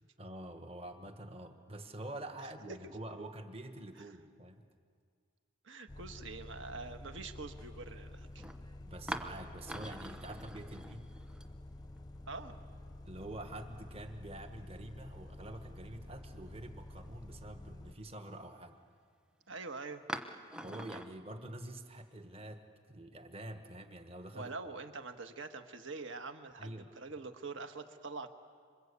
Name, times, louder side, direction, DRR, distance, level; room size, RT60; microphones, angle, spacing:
voice 1, 0.2-4.7 8.8-11.1 13.0-18.8 20.6-24.5 26.6-26.9, right 1 dB, 30° right, 7 dB, 1.3 m, -47 dB
voice 2, 2.4-2.9 4.0-4.1 5.6-8.5 12.3-12.6 19.5-20.0 24.3-28.3, right 3 dB, 65° right, 7 dB, 1.5 m, -45 dB
Bus, 5.9-17.9, left 1 dB, 20° left, 0.6 m, -50 dB
sound 1, 7.6-7.7 8.4-8.6 9.1-12.0 12.2-12.3 13.8-14.5 15.0-15.1 15.6-15.7 20.1-21.1, equal, 5° right, 1.0 m, -44 dB
27.0 x 25.5 x 8.3 m, 2.1 s
head